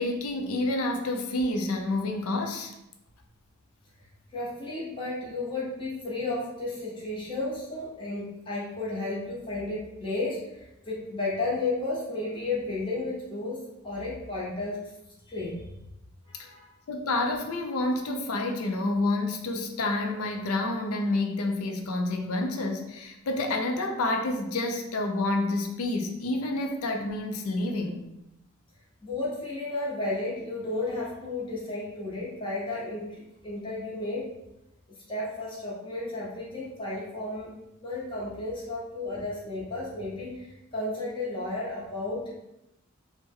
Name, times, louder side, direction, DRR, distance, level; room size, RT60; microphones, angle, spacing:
voice 1, 0.0-2.7 16.9-28.0, left 2 dB, 90° left, 3 dB, 0.5 m, -29 dB
voice 2, 4.3-13.6 13.8-14.9 15.3-15.6 16.3-16.7 29.0-34.3 35.1-37.5 37.8-42.3, left 2 dB, 25° left, -7 dB, 0.8 m, -33 dB
3.2 x 2.1 x 3.4 m, 0.90 s
head